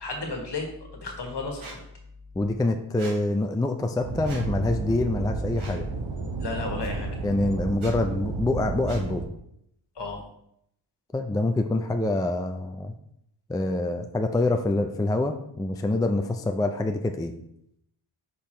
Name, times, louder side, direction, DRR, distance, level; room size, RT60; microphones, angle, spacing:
voice 1, 0.0-1.6 6.4-7.1 9.9-10.2, left 3 dB, 60° left, 2 dB, 1.6 m, -33 dB
Squeak, 1.6-1.8 3.0-3.2 4.2-4.4 5.5-5.8 6.8-6.9 7.7-7.9 8.9-9.0, right 3 dB, 90° right, 1.7 m, -42 dB
voice 2, 2.4-5.9 7.2-9.2 11.1-12.9 13.5-17.3, left 2 dB, 10° left, 5 dB, 0.4 m, -26 dB
sound 1, 4.0-9.3, right 3 dB, 70° right, 1.0 m, -32 dB
5.4 x 4.8 x 4.4 m, 0.75 s
wide cardioid pair, 95°, 47 cm